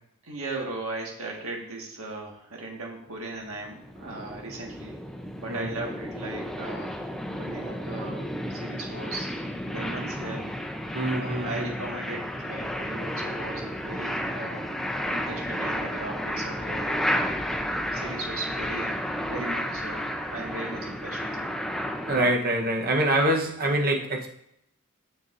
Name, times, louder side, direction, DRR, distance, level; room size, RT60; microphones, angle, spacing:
voice 1, 0.2-5.0 5.4-7.0 7.3-9.3 9.7-10.5 11.1-14.7 15.1-17.0 17.9-21.4, right 2 dB, 70° right, 0 dB, 1.7 m, -37 dB
sound 1, 3.4-22.4, equal, ahead, 0.6 m, -32 dB
voice 2, 5.5-5.8 10.9-11.7 22.0-24.3, right 1 dB, 45° right, 2 dB, 1.0 m, -25 dB
6.8 x 6.7 x 2.6 m, 0.77 s
head